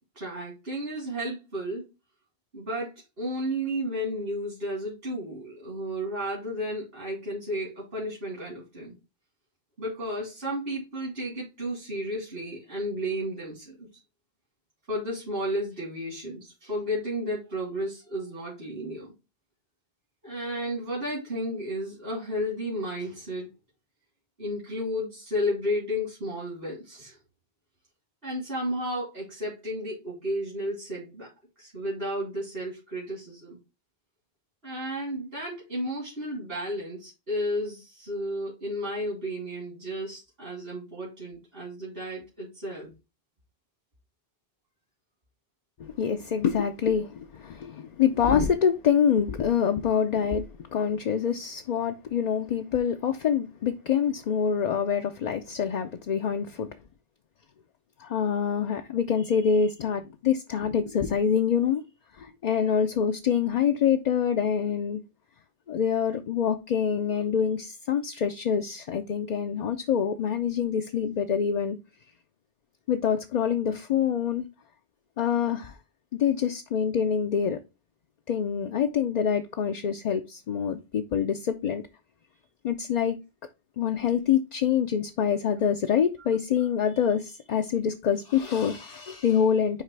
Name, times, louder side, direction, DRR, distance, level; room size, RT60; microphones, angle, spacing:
voice 1, 0.1-1.8 2.5-8.9 9.8-13.9 14.9-19.1 20.2-23.5 24.4-27.2 28.2-31.3 31.6-33.6 34.6-42.9 86.2-86.3, equal, 75° right, 3.2 m, -33 dB
voice 2, 45.8-56.7 58.0-61.8 62.1-65.0 65.7-71.8 72.9-74.5 75.2-75.8 76.1-77.6 78.3-81.8 82.6-83.2 83.8-89.8, left 7 dB, 50° left, 0.6 m, -26 dB
9.7 x 3.3 x 3.3 m
omnidirectional pair, 1.0 m